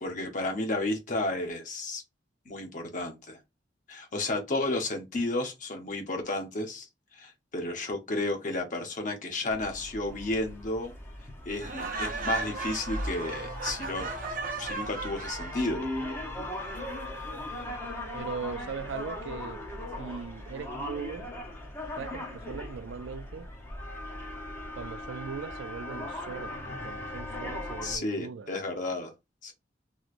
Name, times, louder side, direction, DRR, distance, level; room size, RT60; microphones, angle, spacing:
voice 1, 0.0-2.0 2.5-3.4 3.9-6.9 7.1-10.9 11.5-14.1 14.6-15.9 27.8-29.1 29.4-29.5, left 2 dB, 45° left, 0.9 m, -32 dB
sound 1, 9.5-28.0, left 1 dB, 15° left, 0.8 m, -39 dB
Laughter, 11.6-15.7, right 3 dB, 50° right, 0.7 m, -35 dB
voice 2, 18.1-19.6 20.0-21.3 22.0-23.5 24.8-28.5, right 6 dB, 90° right, 0.4 m, -39 dB
3.1 x 2.9 x 2.5 m
head